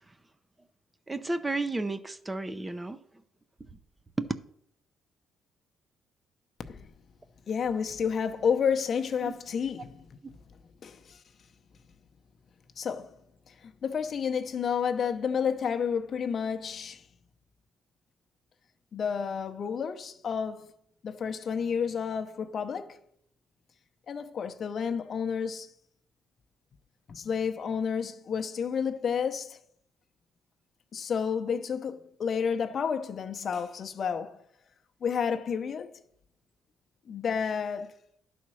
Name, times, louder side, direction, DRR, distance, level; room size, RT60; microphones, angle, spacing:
voice 1, 1.1-3.0 4.2-4.3 9.2-9.3, right 2 dB, 20° right, 0.6 m, -32 dB
voice 2, 7.5-10.4 10.8-11.2 12.8-13.1 13.5-17.0 18.9-20.7 21.0-23.0 24.1-25.7 27.1-29.6 30.9-34.4 35.0-35.9 37.1-37.9, left 6 dB, 55° left, 0.7 m, -30 dB
11.0 x 4.3 x 6.2 m
cardioid pair, 90°, 0 cm